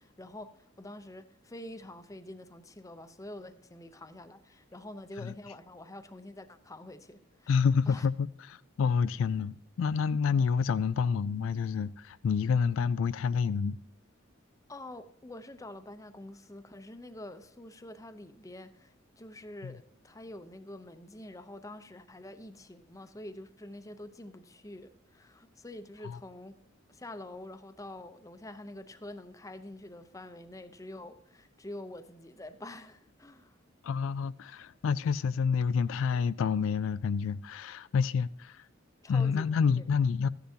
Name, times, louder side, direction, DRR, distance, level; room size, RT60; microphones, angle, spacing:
voice 1, 0.0-8.1 14.7-26.6 26.9-33.6 39.0-39.9, left 1 dB, 15° left, 0.6 m, -46 dB
voice 2, 7.5-13.8 19.6-19.7 26.0-26.2 33.8-38.6 39.1-40.3, left 6 dB, 75° left, 0.3 m, -28 dB
14.0 x 10.5 x 2.8 m
head